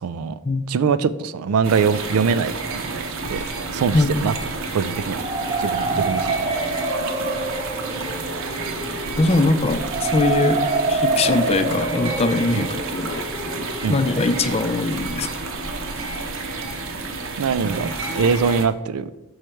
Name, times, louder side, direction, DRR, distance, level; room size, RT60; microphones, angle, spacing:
voice 1, 0.0-0.4 0.7-3.0 3.3-3.4 3.7-4.3 4.7-5.3 5.6-6.5 12.5-12.7 13.8-14.0 17.4-19.1, right 5 dB, 85° right, 15 dB, 0.4 m, -23 dB
sound 1, 1.6-18.7, right 3 dB, 65° right, 0.8 m, -30 dB
voice 2, 3.9-4.3 9.2-10.6 10.9-13.3 13.9-15.3, left 3 dB, 30° left, 10 dB, 0.4 m, -21 dB
sound 2, 5.0-14.8, right 3 dB, 30° right, 0.6 m, -27 dB
6.5 x 4.8 x 4.4 m, 1.1 s
head